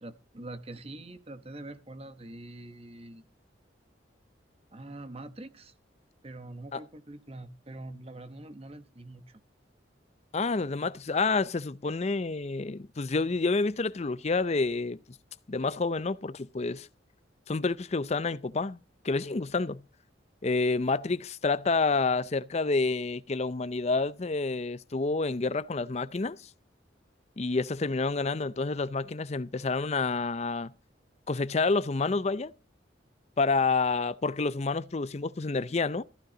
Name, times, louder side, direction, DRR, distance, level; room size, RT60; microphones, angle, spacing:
voice 1, 0.0-3.2 4.7-5.7 6.2-9.4, right 2 dB, 35° right, 1.0 m, -44 dB
voice 2, 10.3-15.0 15.5-16.9 17.5-18.8 19.0-19.8 20.4-26.4 27.4-30.7 31.3-32.5 33.4-36.0, left 3 dB, 35° left, 0.5 m, -28 dB
14.5 x 12.0 x 3.9 m
head